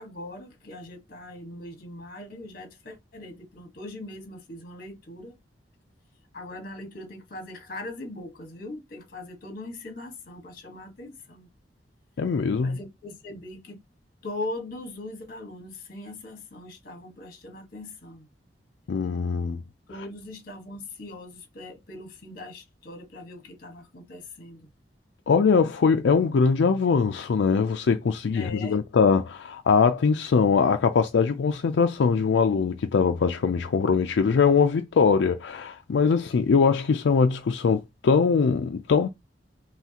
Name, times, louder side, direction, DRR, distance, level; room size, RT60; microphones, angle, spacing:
voice 1, 0.0-5.4 6.3-11.5 12.6-13.8 14.2-18.3 19.9-24.7 28.3-28.8, left 2 dB, 55° left, 1.4 m, -40 dB
voice 2, 12.2-12.8 18.9-19.6 25.3-39.1, left 5 dB, 80° left, 0.4 m, -22 dB
5.7 x 2.3 x 2.8 m
head